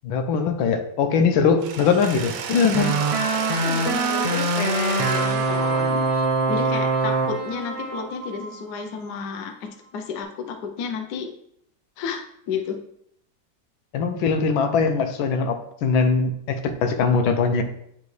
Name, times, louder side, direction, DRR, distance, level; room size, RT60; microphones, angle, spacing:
voice 1, 0.0-3.0 13.9-17.6, left 5 dB, 85° left, 7 dB, 1.5 m, -21 dB
Mechanisms, 1.6-7.5, right 7 dB, 85° right, 1.5 m, -33 dB
sound 1, 2.7-8.9, right 3 dB, 60° right, 0.3 m, -24 dB
voice 2, 3.3-6.0 6.5-11.3 12.0-12.8, left 5 dB, 65° left, 5 dB, 1.2 m, -31 dB
9.2 x 4.1 x 3.2 m, 0.72 s
omnidirectional pair, 2.1 m